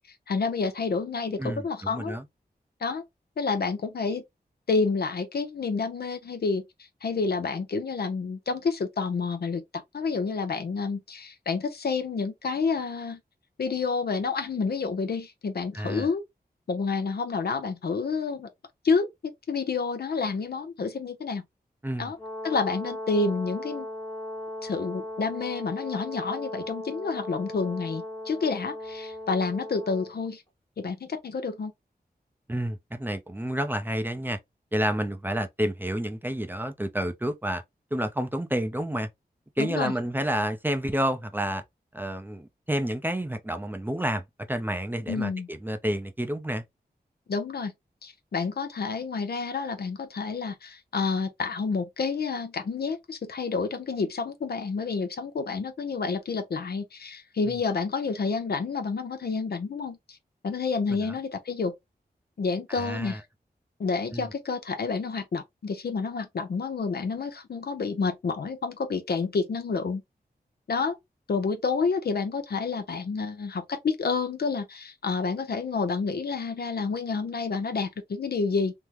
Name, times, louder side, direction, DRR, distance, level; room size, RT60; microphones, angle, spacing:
voice 1, 0.3-2.2 2.8-3.0 3.4-4.2 4.7-6.6 7.0-13.2 13.6-16.2 16.7-18.5 18.8-21.4 22.0-22.2 22.4-23.9 24.6-30.4 30.8-31.7 39.6-39.9 45.1-45.5 47.3-47.7 48.0-60.0 60.4-61.7 62.4-63.2 63.8-70.0 70.7-71.0 71.3-78.7, left 4 dB, 75° left, 0.7 m, -29 dB
voice 2, 1.4-2.2 15.7-16.1 21.8-22.1 32.5-34.4 34.7-37.6 37.9-39.1 39.6-41.6 41.9-44.2 44.5-46.6 57.5-57.6 60.9-61.1 62.7-63.2 64.1-64.3, right 1 dB, 10° right, 0.5 m, -29 dB
Brass instrument, 22.2-30.1, left 1 dB, 30° left, 1.5 m, -37 dB
3.5 x 2.0 x 2.9 m
wide cardioid pair, 80°, 17 cm